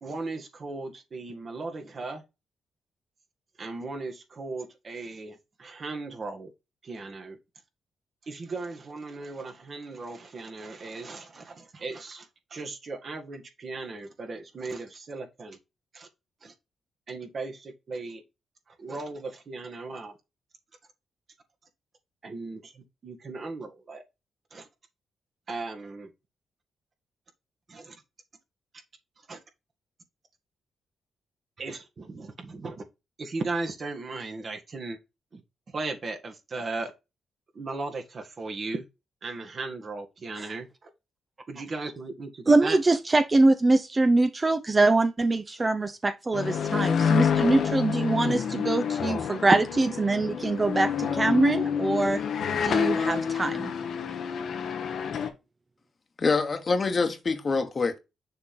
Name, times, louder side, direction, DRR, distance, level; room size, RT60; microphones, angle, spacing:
voice 1, 0.0-2.2 3.6-6.5 6.8-7.4 8.2-15.6 15.9-16.1 16.4-16.5 17.1-18.2 18.7-20.2 22.2-24.0 24.5-24.7 25.5-26.1 27.7-28.0 29.3-29.4 31.6-32.8 33.2-35.0 35.3-35.4 35.7-36.9 37.5-38.9 39.2-40.9 41.5-42.8, right 3 dB, 55° right, 1.6 m, -37 dB
voice 2, 42.5-49.6 50.0-52.2 52.6-53.7, right 2 dB, 35° right, 0.7 m, -23 dB
sound 1, 46.3-55.3, left 7 dB, 70° left, 1.2 m, -28 dB
voice 3, 56.2-58.0, left 4 dB, 45° left, 1.3 m, -25 dB
6.7 x 3.6 x 4.3 m
supercardioid pair, 55°, 0 cm